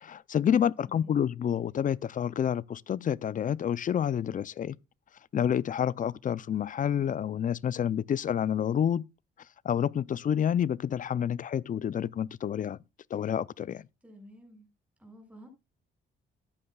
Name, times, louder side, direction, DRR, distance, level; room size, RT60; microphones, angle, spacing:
voice 1, 0.0-4.8 5.3-9.1 9.6-12.8 13.1-13.8, left 9 dB, 40° left, 0.5 m, -28 dB
voice 2, 0.8-1.2 14.0-14.7 15.0-15.5, equal, 5° right, 6.5 m, -52 dB
14.5 x 9.9 x 2.4 m
cardioid pair, 90°, 20 cm